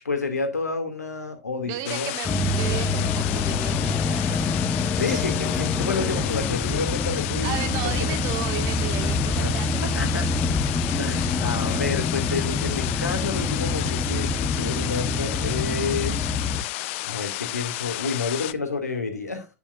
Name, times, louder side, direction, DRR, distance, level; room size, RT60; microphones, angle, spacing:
voice 1, 0.0-2.1 5.0-7.5 7.8-8.2 9.3-9.5 9.9-10.3 11.0-16.2 17.0-19.5, left 4 dB, 85° left, 2.5 m, -29 dB
voice 2, 1.6-4.4 5.0-5.2 7.4-10.2, right 11 dB, 45° right, 1.9 m, -34 dB
sound 1, 1.9-18.5, left 18 dB, 50° left, 0.6 m, -32 dB
sound 2, 2.2-16.6, left 3 dB, 20° left, 1.2 m, -26 dB
10.0 x 8.5 x 2.6 m
figure-of-eight pair, 95°, 9 cm